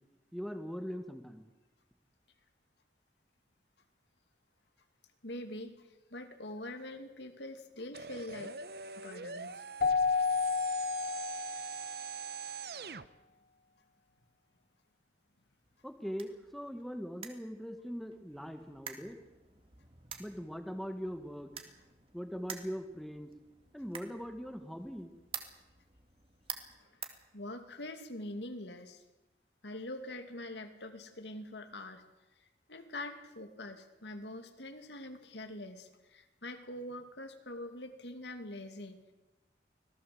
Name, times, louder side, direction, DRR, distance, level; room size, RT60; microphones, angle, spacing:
voice 1, 0.3-1.4 15.8-19.2 20.2-21.5 22.1-23.3 23.7-25.1, equal, ahead, 6 dB, 1.6 m, -41 dB
voice 2, 5.2-8.7 9.0-9.6 26.8-27.0 27.3-29.0 29.6-32.0 32.7-39.1, left 1 dB, 75° left, 7 dB, 2.6 m, -44 dB
sound 1, 7.9-13.1, right 5 dB, 60° right, 1.0 m, -43 dB
Keyboard (musical), 9.8-12.1, left 5 dB, 50° left, 0.8 m, -31 dB
sound 2, 15.6-27.9, right 7 dB, 30° right, 2.1 m, -50 dB
25.5 x 18.0 x 7.8 m, 1.1 s
head